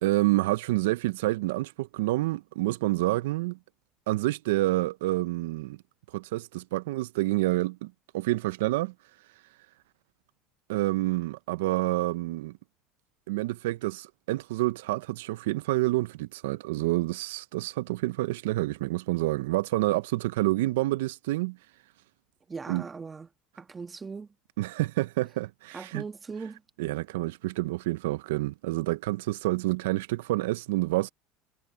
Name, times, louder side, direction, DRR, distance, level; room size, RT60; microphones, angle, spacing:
voice 1, 0.0-3.6 4.1-5.8 6.1-8.9 10.7-12.6 13.3-21.6 22.7-22.8 24.6-26.0 26.8-31.1, right 18 dB, 80° right, 0.4 m, -28 dB
voice 2, 22.5-23.3 23.6-24.3 25.7-26.6, right 5 dB, 25° right, 1.7 m, -39 dB
supercardioid pair, 95°, 0 cm